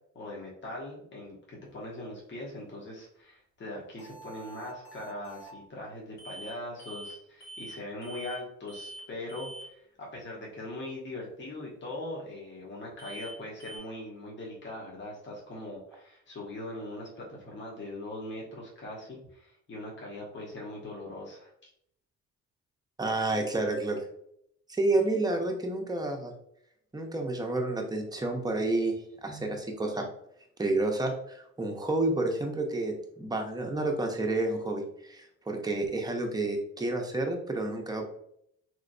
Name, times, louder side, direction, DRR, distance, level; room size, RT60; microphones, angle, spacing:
voice 1, 0.1-21.5, left 1 dB, 40° left, -3 dB, 1.1 m, -41 dB
sound 1, 4.0-5.6 6.2-6.5 6.8-7.2 7.4-7.8 8.0-8.4 8.7-9.0 9.3-9.7 13.0-13.3 13.6-13.8, right 2 dB, 80° left, 1.5 m, -45 dB
voice 2, 23.0-24.1 24.7-26.3 26.9-30.1 30.6-38.1, right 2 dB, 15° right, 1 dB, 0.7 m, -30 dB
3.1 x 3.0 x 2.6 m, 0.72 s
cardioid pair, 90°, 30 cm